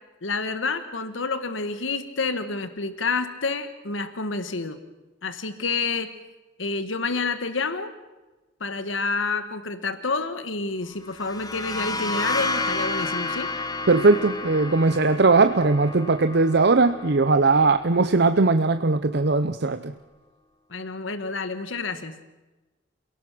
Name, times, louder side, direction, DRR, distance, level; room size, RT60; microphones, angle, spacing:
voice 1, 0.2-4.8 5.2-6.1 6.6-7.9 8.6-13.5 20.7-22.2, left 4 dB, 85° left, 10 dB, 1.5 m, -29 dB
sound 1, 11.1-18.6, left 2 dB, 20° left, 1.2 m, -31 dB
voice 2, 13.9-19.9, right 3 dB, 60° right, 10 dB, 0.8 m, -19 dB
28.0 x 17.5 x 6.2 m, 1.1 s
head